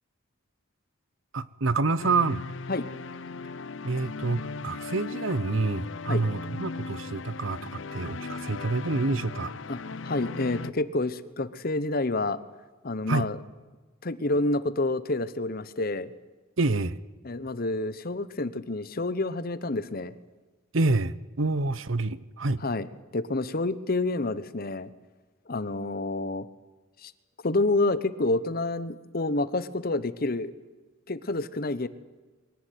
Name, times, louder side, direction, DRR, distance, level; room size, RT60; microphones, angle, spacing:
voice 1, 1.3-2.4 3.8-9.5 13.1-13.3 16.6-17.0 20.7-22.6, right 3 dB, 70° right, 17 dB, 0.9 m, -27 dB
sound 1, 2.0-10.7, left 4 dB, 65° left, 0.6 m, -38 dB
voice 2, 9.7-12.4 12.8-13.4 14.0-16.1 17.2-20.1 22.6-22.9 23.1-24.9 25.5-26.5 27.0-27.1 27.4-30.5 31.1-31.9, left 2 dB, 45° left, 15 dB, 1.0 m, -28 dB
23.0 x 18.0 x 9.4 m, 1.3 s
head